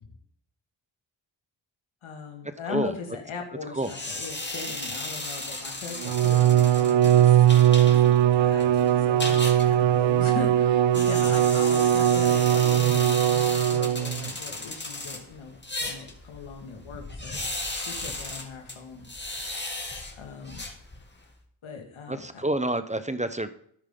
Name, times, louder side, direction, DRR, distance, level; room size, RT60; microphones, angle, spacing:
voice 1, 2.0-13.2 13.6-17.5 17.8-19.1 20.1-20.6 21.6-22.4, left 5 dB, 90° left, 3 dB, 2.3 m, -39 dB
sound 1, 3.8-21.3, left 2 dB, 20° left, 2.3 m, -36 dB
Bowed string instrument, 6.0-14.3, right 11 dB, 70° right, 0.6 m, -20 dB
voice 2, 22.1-23.5, right 1 dB, 15° right, 11 dB, 0.9 m, -28 dB
13.0 x 10.0 x 3.9 m, 0.66 s
cardioid pair, 55°, 47 cm